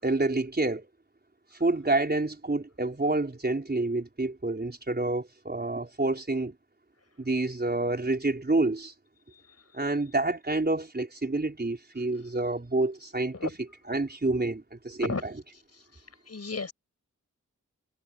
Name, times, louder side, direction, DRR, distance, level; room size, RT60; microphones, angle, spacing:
voice 1, 0.0-0.9 1.6-6.5 7.2-8.9 9.7-15.4, right 2 dB, 30° right, 4.7 m, -28 dB
voice 2, 16.3-16.7, left 4 dB, 55° left, 5.9 m, -33 dB
cardioid pair, 55°, 31 cm